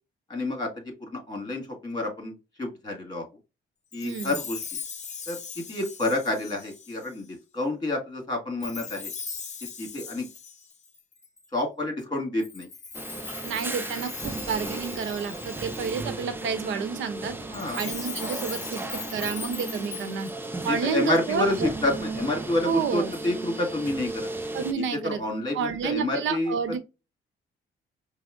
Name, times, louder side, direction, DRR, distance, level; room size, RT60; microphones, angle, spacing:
voice 1, 0.3-0.7 1.0-3.3 3.9-4.8 5.3-9.1 9.8-10.3 11.5-12.7 17.5-17.8 20.7-24.3 24.7-26.8, left 2 dB, 20° left, 1.7 m, -29 dB
Chime, 3.9-7.3 8.6-11.5 12.4-16.2 17.5-20.6, left 5 dB, 35° left, 0.6 m, -39 dB
voice 2, 4.0-4.3 13.4-17.3 17.8-20.3 20.6-21.7 22.6-23.1 24.5-25.2 25.5-26.8, right 6 dB, 75° right, 0.8 m, -30 dB
sound 1, 12.9-24.7, right 2 dB, 10° right, 0.5 m, -36 dB
5.2 x 2.0 x 2.3 m
cardioid pair, 90°, 20 cm